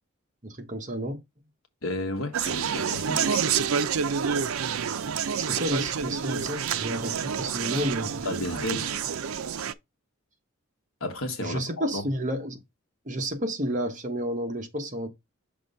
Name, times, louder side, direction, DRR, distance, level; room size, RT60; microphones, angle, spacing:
voice 1, 0.4-1.2 5.4-8.3 11.4-12.6 13.1-15.1, equal, 35° right, 1.1 m, -31 dB
voice 2, 1.8-3.6 8.2-8.9 11.0-12.0, left 1 dB, 65° left, 1.4 m, -33 dB
Conversation, 2.3-9.7, right 7 dB, 70° right, 0.5 m, -28 dB
6.1 x 3.4 x 5.3 m
head